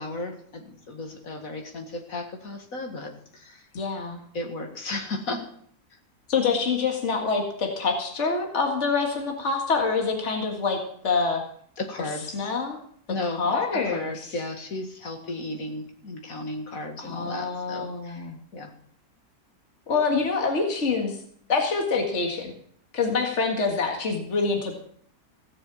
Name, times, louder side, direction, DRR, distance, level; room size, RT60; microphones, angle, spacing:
voice 1, 0.0-3.6 4.3-5.5 11.8-12.5 13.1-13.4 13.9-18.3 18.5-18.7, left 2 dB, 65° left, 4 dB, 2.4 m, -34 dB
voice 2, 3.7-4.2 6.3-11.4 12.3-12.8 13.2-14.3 17.0-18.4 19.9-21.2 21.5-22.5 22.9-24.7, left 4 dB, 50° left, 2 dB, 2.2 m, -26 dB
16.5 x 6.9 x 7.3 m, 0.63 s
omnidirectional pair, 1.6 m